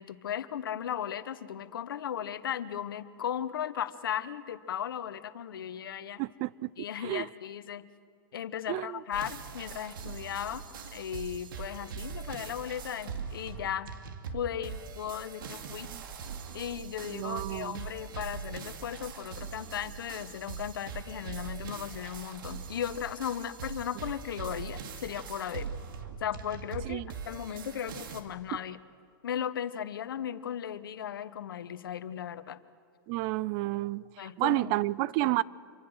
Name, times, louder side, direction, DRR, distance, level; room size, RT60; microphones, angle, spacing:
voice 1, 0.0-6.2 6.8-7.8 8.3-10.6 10.9-13.9 14.3-15.9 16.5-25.7 26.2-28.8 29.2-32.6 34.2-34.7 35.2-35.4, left 9 dB, 85° left, 1.1 m, -36 dB
voice 2, 6.2-6.7 7.0-7.3 8.7-9.0 15.9-16.0 17.1-17.8 26.9-27.0 33.1-35.4, right 19 dB, 45° right, 0.5 m, -31 dB
sound 1, 9.1-28.2, right 6 dB, 75° right, 2.5 m, -42 dB
26.5 x 24.5 x 6.4 m
hypercardioid pair, 130°, 11 cm